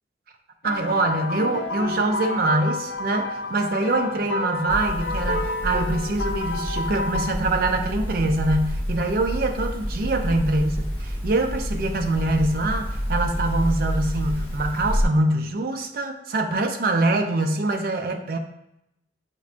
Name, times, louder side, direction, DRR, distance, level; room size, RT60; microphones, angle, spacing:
sound 1, 0.6-7.4, left 3 dB, 65° left, 0.3 m, -30 dB
voice 1, 0.6-18.4, right 2 dB, 50° right, 5 dB, 0.4 m, -24 dB
sound 2, 4.7-15.0, equal, 10° left, 0.6 m, -29 dB
6.0 x 2.1 x 2.5 m, 0.82 s
head